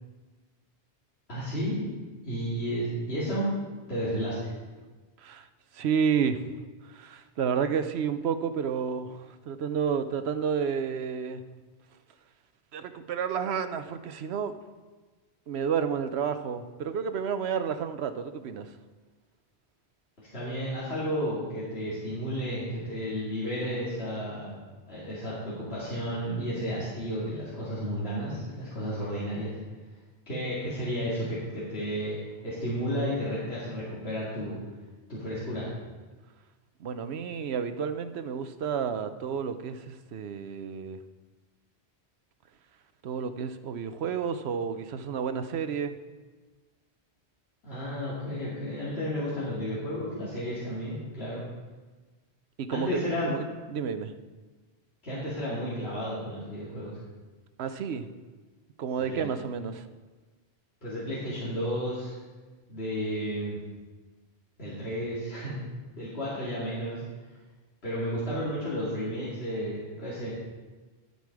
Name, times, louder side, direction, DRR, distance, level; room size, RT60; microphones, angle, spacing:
voice 1, 1.3-1.9 2.2-3.5 3.9-4.5 20.2-24.6 24.9-29.6 30.3-34.6 35.1-35.7 47.6-51.4 52.7-53.3 55.0-57.0 59.0-59.3 60.8-62.1 62.7-63.6 64.6-65.6 65.9-67.0 67.8-70.3, equal, 70° left, -10 dB, 2.9 m, -32 dB
voice 2, 5.7-6.4 6.8-11.4 12.7-14.5 15.5-18.7 36.8-41.0 43.0-45.9 52.6-54.1 57.6-58.1 58.8-59.8, right 7 dB, 75° right, 10 dB, 1.0 m, -31 dB
12.5 x 8.2 x 4.8 m, 1.3 s
omnidirectional pair, 1.1 m